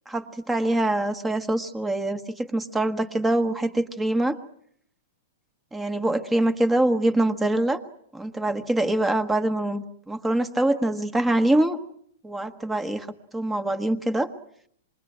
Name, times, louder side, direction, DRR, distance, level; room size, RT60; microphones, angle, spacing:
voice 1, 0.1-4.4 5.7-7.8 8.1-11.8 12.2-13.1 13.3-14.3, right 1 dB, 5° right, 8 dB, 1.2 m, -24 dB
27.0 x 21.5 x 9.1 m, 0.68 s
supercardioid pair, 175°, 0 cm